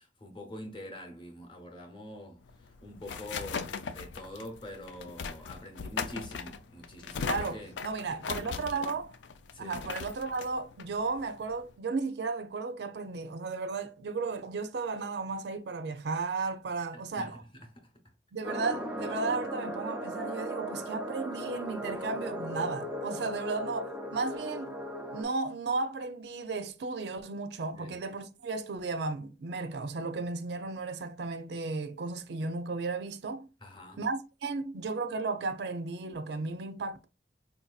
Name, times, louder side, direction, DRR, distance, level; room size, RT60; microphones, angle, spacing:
voice 1, 0.0-7.7 8.2-8.4 9.5-9.8 16.9-17.3 17.7-17.9 27.8-28.0 33.6-34.0, left 1 dB, 30° left, 0.8 m, -45 dB
sound 1, 2.4-11.7, left 5 dB, 85° left, 0.4 m, -39 dB
voice 2, 7.2-9.1 9.6-17.4 18.3-24.8 25.1-33.5 34.0-37.1, right 3 dB, 70° right, 0.5 m, -34 dB
sound 2, 18.4-25.2, equal, 5° right, 0.5 m, -37 dB
4.4 x 2.7 x 2.3 m
head